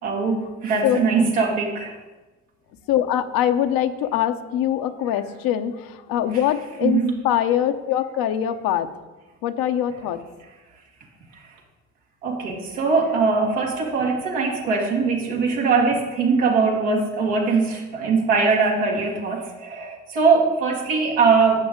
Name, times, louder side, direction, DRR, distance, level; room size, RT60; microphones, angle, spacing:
voice 1, 0.0-2.0 6.8-7.1 12.2-21.6, right 4 dB, 80° right, -1 dB, 2.2 m, -21 dB
voice 2, 2.9-8.9 9.4-10.2, left 11 dB, 65° left, 9 dB, 0.9 m, -23 dB
11.0 x 7.8 x 3.8 m, 1.2 s
hypercardioid pair, 60°, 37 cm